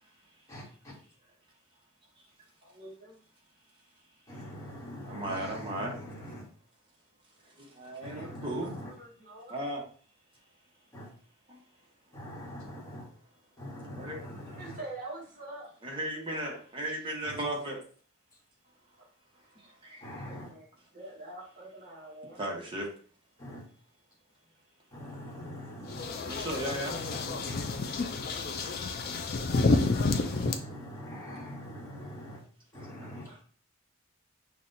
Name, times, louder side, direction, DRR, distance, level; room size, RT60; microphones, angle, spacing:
voice 1, 0.5-1.0 4.3-6.5 8.0-8.9 10.9-11.1 12.1-13.1 13.6-14.8 17.2-17.4 20.0-20.5 23.4-23.6 24.9-26.1 26.8-27.7 29.0-29.2 29.5-32.4 32.7-33.3, equal, 15° left, -5 dB, 1.3 m, -43 dB
voice 2, 2.6-3.2 8.8-9.6 14.6-15.7 16.1-16.4 20.2-20.7 20.9-22.4 33.3-33.4, right 2 dB, 40° right, -6 dB, 1.4 m, -46 dB
voice 3, 5.0-5.9 7.6-8.8 9.5-9.8 11.5-11.6 14.0-14.2 15.8-17.8 19.6-20.4 22.2-22.9 26.2-27.0, right 1 dB, 25° right, -2 dB, 1.1 m, -36 dB
sound 1, 25.9-30.6, left 3 dB, 45° left, 0.4 m, -29 dB
5.7 x 2.4 x 2.7 m, 0.43 s
head